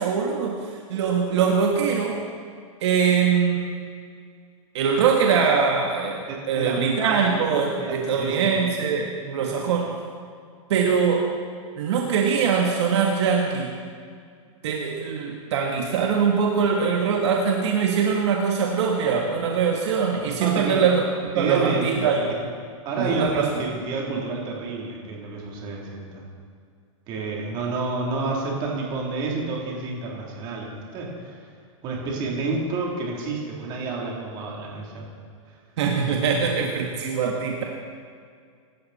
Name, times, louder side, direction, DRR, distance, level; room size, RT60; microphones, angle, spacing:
voice 1, 0.0-2.2 2.8-3.8 4.7-9.9 10.7-11.3 11.8-13.8 14.6-21.0 21.3-22.3 23.0-23.5 35.8-37.6, right 6 dB, 55° right, 0 dB, 1.8 m, -22 dB
voice 2, 6.3-7.2 7.8-8.5 20.4-20.8 21.3-21.9 22.8-26.3 27.1-31.4 31.8-35.0 35.5-35.6, right 3 dB, 25° right, -2 dB, 3.4 m, -29 dB
25.5 x 13.0 x 4.3 m, 2.2 s
supercardioid pair, 170°, 17 cm